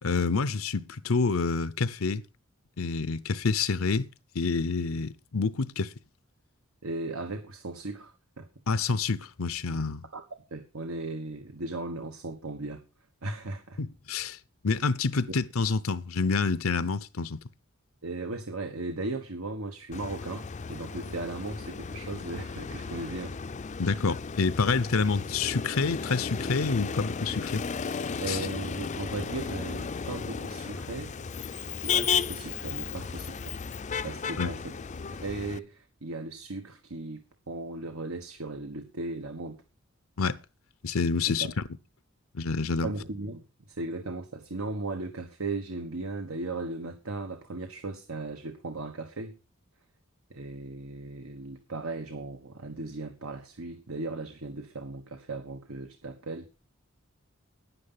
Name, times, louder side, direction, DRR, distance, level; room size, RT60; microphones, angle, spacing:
voice 1, 0.0-2.2 2.8-4.1 4.3-5.9 8.7-10.0 13.8-14.4 14.6-17.4 23.8-27.6 28.3-28.4 34.4-34.5 40.2-40.4 40.8-41.5 42.3-42.9, left 4 dB, 75° left, 0.7 m, -28 dB
voice 2, 6.8-8.5 10.1-12.8 13.2-13.8 18.0-23.4 28.2-31.1 31.8-33.6 34.0-37.2 37.5-39.6 41.3-41.5 42.8-49.4 50.3-56.6, right 2 dB, 80° right, 1.3 m, -37 dB
Motor vehicle (road), 19.9-35.6, left 6 dB, 35° left, 0.5 m, -34 dB
10.5 x 9.7 x 5.6 m
head